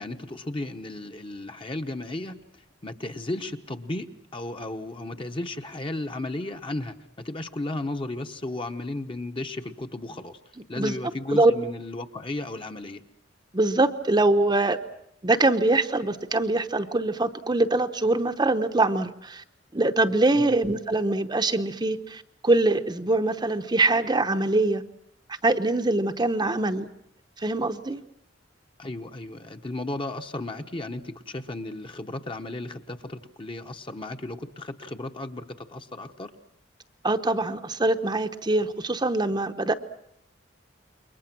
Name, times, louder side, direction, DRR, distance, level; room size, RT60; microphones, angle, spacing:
voice 1, 0.0-2.4 2.8-10.4 10.7-13.0 20.3-20.5 28.8-36.3, left 2 dB, 30° left, 6 dB, 1.1 m, -34 dB
voice 2, 13.5-14.8 15.2-19.4 19.7-24.8 25.4-26.9 27.4-28.0 37.0-39.7, right 2 dB, 25° right, 7 dB, 0.9 m, -23 dB
29.0 x 22.5 x 6.1 m, 0.73 s
head